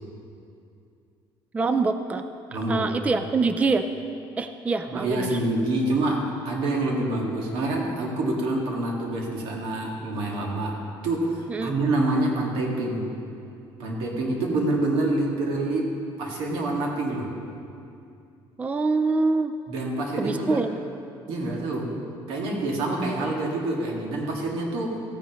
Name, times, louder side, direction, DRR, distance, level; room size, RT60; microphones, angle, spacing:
voice 1, 1.5-2.3 2.5-3.9 4.4-5.4 11.5-11.7 18.6-19.5 20.2-20.7, right 3 dB, 15° right, 9 dB, 0.3 m, -25 dB
voice 2, 2.5-2.9 4.9-10.8 11.0-13.1 13.8-15.9 16.2-17.3 19.7-20.6 21.3-25.0, right 2 dB, 80° right, -1 dB, 1.8 m, -26 dB
15.0 x 9.2 x 3.0 m, 2.5 s
cardioid pair, 135°, 9 cm